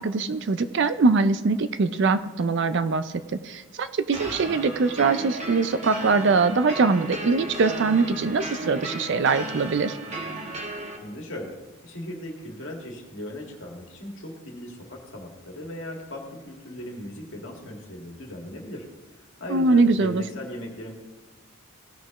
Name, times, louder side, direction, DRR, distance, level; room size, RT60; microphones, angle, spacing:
voice 1, 0.0-3.1 3.4-10.0 19.5-20.2, right 4 dB, 55° right, 12 dB, 0.4 m, -22 dB
sound 1, 4.1-11.0, right 2 dB, 30° right, 1.1 m, -35 dB
voice 2, 11.0-11.6 11.8-18.8 19.4-21.0, left 1 dB, 60° left, 0 dB, 2.0 m, -37 dB
16.5 x 6.3 x 3.0 m, 1.3 s
head